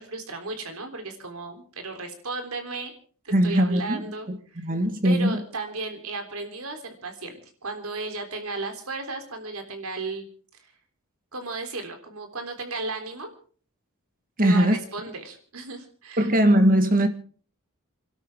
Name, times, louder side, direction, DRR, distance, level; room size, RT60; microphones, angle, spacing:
voice 1, 0.0-2.9 3.2-4.7 5.0-10.7 11.3-13.3 14.4-16.3, right 3 dB, 80° right, 3.6 m, -35 dB
voice 2, 3.3-5.4 14.4-14.8 16.2-17.1, right 1 dB, 40° right, 1.7 m, -21 dB
28.5 x 12.5 x 3.7 m
head